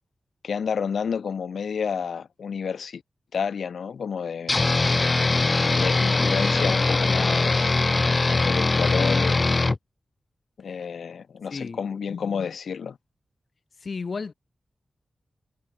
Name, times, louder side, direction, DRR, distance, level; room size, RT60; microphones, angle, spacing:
voice 1, 0.4-3.0 3.3-4.7 5.7-7.9 8.3-9.7 10.6-13.0, left 6 dB, 85° left, 2.0 m, -30 dB
sound 1, 4.5-9.8, left 3 dB, 35° left, 2.8 m, -21 dB
voice 2, 13.8-14.3, left 4 dB, 55° left, 5.2 m, -32 dB
wide cardioid pair, 90°, 0 cm